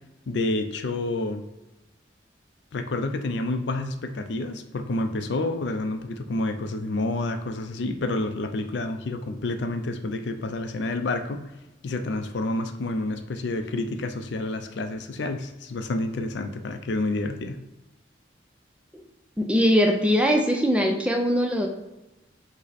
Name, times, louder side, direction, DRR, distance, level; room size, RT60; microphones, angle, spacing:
voice 1, 0.3-1.4 2.7-11.4 11.8-17.6, left 2 dB, 75° left, 7 dB, 0.5 m, -29 dB
voice 2, 19.4-21.7, equal, 5° right, 2 dB, 0.4 m, -21 dB
5.2 x 2.1 x 4.1 m, 1.0 s
head